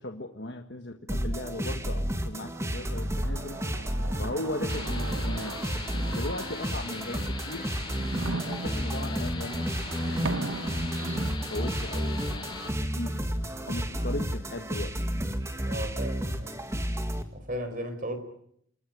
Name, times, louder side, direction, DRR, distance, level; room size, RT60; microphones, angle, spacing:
voice 1, 0.0-3.6 4.2-5.6 6.1-7.7 8.3-13.3 13.7-15.0, left 1 dB, 55° left, 1.6 m, -38 dB
sound 1, 1.1-17.2, equal, 15° right, 2.0 m, -31 dB
sound 2, 2.5-6.9 7.5-11.4, right 3 dB, 80° right, 1.2 m, -38 dB
sound 3, 4.7-12.7, left 4 dB, 25° left, 5.0 m, -41 dB
voice 2, 15.6-16.5 17.3-18.2, equal, 40° right, 4.9 m, -35 dB
29.0 x 20.0 x 9.3 m
head